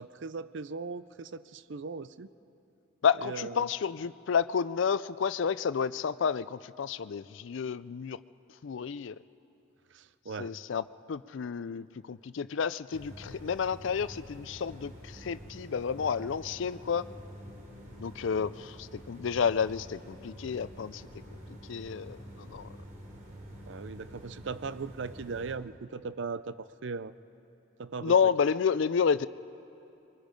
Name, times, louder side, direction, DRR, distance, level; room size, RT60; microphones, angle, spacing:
voice 1, 0.0-2.3 3.2-3.7 9.9-10.5 23.7-27.1 27.8-28.3, right 4 dB, 65° right, 15 dB, 0.5 m, -38 dB
voice 2, 3.0-8.2 8.6-9.2 10.4-17.0 18.0-21.0 21.7-22.7 28.0-29.3, left 6 dB, 65° left, 16 dB, 0.4 m, -30 dB
sound 1, 12.9-25.5, equal, 40° right, 3.3 m, -47 dB
23.5 x 22.5 x 5.2 m, 2.8 s
head